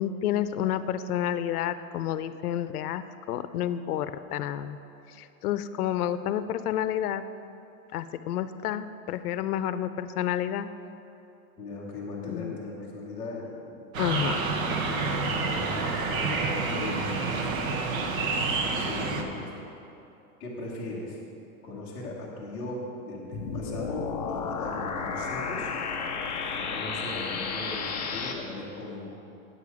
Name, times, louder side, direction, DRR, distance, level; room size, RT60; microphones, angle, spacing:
voice 1, 0.0-4.8 5.1-7.2 7.9-10.7 12.3-12.6 14.0-14.4, left 10 dB, 90° left, 13 dB, 0.6 m, -30 dB
voice 2, 11.6-13.8 14.7-15.8 16.3-17.8 18.3-19.5 20.4-21.2 21.6-25.7 26.5-29.1, left 2 dB, 10° left, -10 dB, 0.9 m, -39 dB
sound 1, 13.9-19.2, right 3 dB, 65° right, 1.2 m, -28 dB
sound 2, 23.3-28.3, left 5 dB, 30° left, 0.5 m, -32 dB
9.0 x 8.5 x 4.8 m, 2.8 s
supercardioid pair, 180°, 44 cm